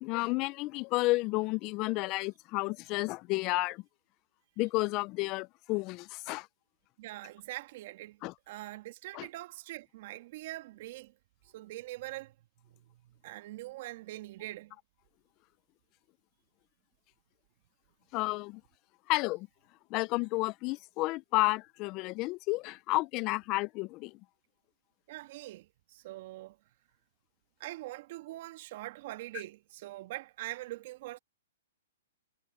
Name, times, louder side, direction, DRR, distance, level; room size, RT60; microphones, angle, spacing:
voice 1, 0.0-3.8 4.6-6.5 8.2-8.3 9.1-9.3 18.1-18.6 19.1-19.5 19.9-24.1, left 22 dB, 35° left, 0.5 m, -31 dB
voice 2, 7.0-11.1 11.5-12.3 12.6-14.8 25.1-26.6 27.6-31.2, right 17 dB, 50° right, 1.9 m, -43 dB
hypercardioid pair, 140°, 0 cm